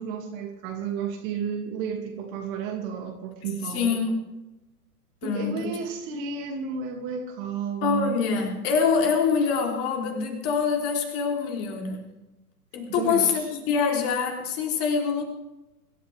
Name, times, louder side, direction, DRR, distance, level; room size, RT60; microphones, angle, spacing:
voice 1, 0.0-4.0 5.2-8.2 12.9-13.4, right 6 dB, 35° right, 3 dB, 2.5 m, -32 dB
voice 2, 3.7-4.2 5.2-5.7 7.8-12.0 12.7-15.2, left 6 dB, 30° left, 1 dB, 3.5 m, -25 dB
25.0 x 12.5 x 3.5 m, 1.0 s
figure-of-eight pair, 115°, 47 cm